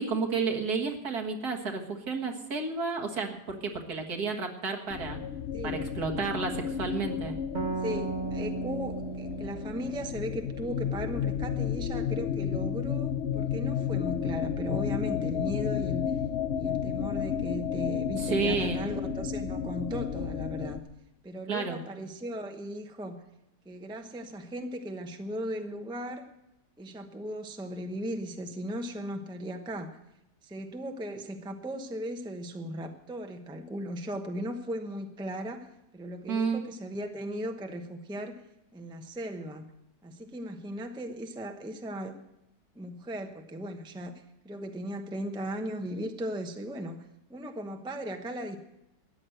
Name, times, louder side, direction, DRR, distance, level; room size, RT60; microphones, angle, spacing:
voice 1, 0.0-5.2 5.6-7.4 18.2-18.8 21.5-21.8 36.3-36.6, right 4 dB, 70° right, 2 dB, 2.1 m, -31 dB
sound 1, 4.9-20.8, left 8 dB, 60° left, 0.7 m, -32 dB
voice 2, 5.5-5.9 7.8-16.2 16.5-20.8 21.2-23.2 23.6-26.3 26.8-30.0 30.4-35.7 35.9-38.4 38.7-39.7 40.0-42.2 42.7-48.6, equal, 5° right, 5 dB, 0.7 m, -37 dB
sound 2, 7.5-11.1, right 5 dB, 35° right, 1.2 m, -37 dB
14.0 x 9.7 x 7.7 m, 0.88 s
omnidirectional pair, 1.7 m